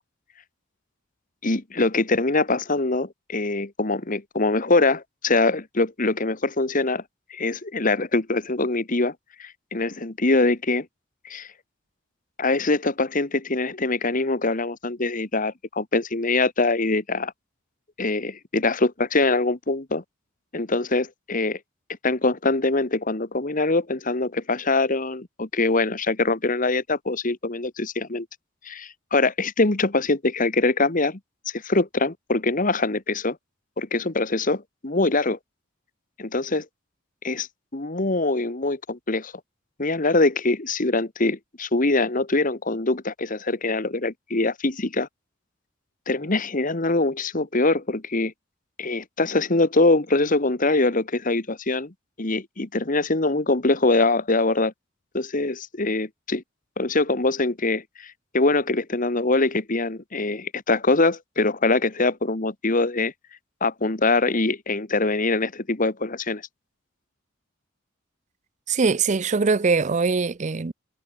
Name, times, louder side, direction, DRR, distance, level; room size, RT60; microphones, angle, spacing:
voice 1, 1.4-7.0 7.3-9.1 9.4-10.9 11.2-11.5 12.4-17.3 18.0-20.0 20.5-21.6 22.0-28.3 28.6-31.2 31.5-33.4 33.8-35.4 36.2-36.6 37.2-37.5 37.7-39.3 39.8-45.1 46.1-48.3 48.8-54.7 55.1-56.4 56.8-63.1 63.6-66.4, left 2 dB, 45° left, 1.6 m, -23 dB
voice 2, 68.7-70.7, right 4 dB, 40° right, 0.5 m, -22 dB
head